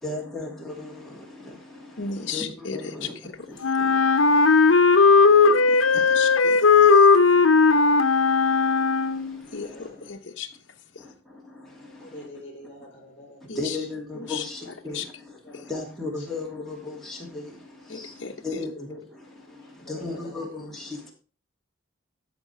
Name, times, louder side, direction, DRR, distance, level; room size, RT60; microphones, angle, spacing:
voice 1, 0.0-6.4 6.7-10.1 11.0-12.3 13.5-21.1, left 3 dB, ahead, -3 dB, 2.7 m, -38 dB
voice 2, 2.0-2.8 5.7-7.1 9.5-10.5 10.9-11.0 13.5-13.8 14.2-14.4 14.9-15.1 15.5-15.6 17.9-18.6, left 5 dB, 60° left, 2 dB, 1.0 m, -35 dB
Wind instrument woodwind instrument, 3.6-9.4, left 4 dB, 90° left, 0.8 m, -17 dB
voice 3, 9.7-10.1 12.0-13.6 15.4-15.5 19.8-20.4, left 1 dB, 30° left, 1 dB, 3.1 m, -45 dB
13.0 x 5.2 x 4.6 m, 0.35 s
head